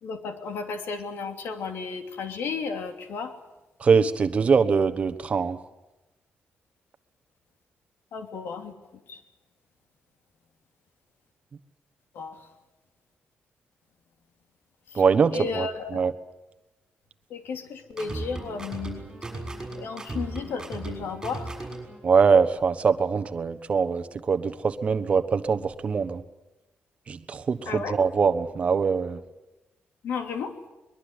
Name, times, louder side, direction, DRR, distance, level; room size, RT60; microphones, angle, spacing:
voice 1, 0.0-3.3 8.1-8.7 9.1-9.2 12.1-12.5 14.9-15.0 15.3-16.0 17.3-19.0 19.7-21.5 27.7-28.0 30.0-30.6, left 5 dB, 75° left, 7 dB, 2.9 m, -33 dB
voice 2, 3.8-5.6 14.9-15.7 15.9-16.1 22.0-26.2 27.1-29.2, right 5 dB, 35° right, 11 dB, 1.2 m, -23 dB
sound 1, 17.9-22.0, right 2 dB, 15° right, 6.4 m, -36 dB
22.5 x 21.5 x 9.8 m, 1.0 s
wide cardioid pair, 175°, 4 cm